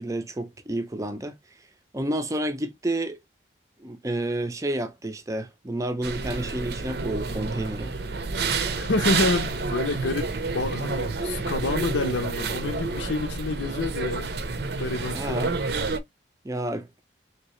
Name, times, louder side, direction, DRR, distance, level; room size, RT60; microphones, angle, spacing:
voice 1, 0.0-1.3 1.9-3.2 3.8-7.9 15.1-15.5 16.4-16.9, right 1 dB, 15° right, 0.5 m, -30 dB
sound 1, 6.0-16.0, right 4 dB, 60° right, 0.6 m, -29 dB
voice 2, 8.8-14.3 14.8-15.5, left 3 dB, 90° left, 0.7 m, -28 dB
3.3 x 2.8 x 3.0 m
head